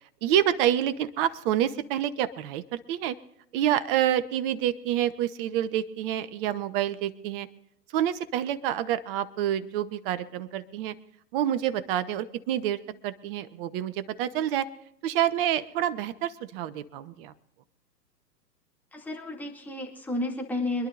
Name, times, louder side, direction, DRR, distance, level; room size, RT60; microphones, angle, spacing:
voice 1, 0.2-3.1 3.5-7.5 7.9-10.9 11.3-14.7 15.0-17.3, right 11 dB, 35° right, 14 dB, 1.0 m, -28 dB
voice 2, 18.9-20.9, left 2 dB, 5° left, 0 dB, 2.5 m, -32 dB
26.0 x 11.5 x 2.6 m, 0.75 s
hypercardioid pair, 120°, 50 cm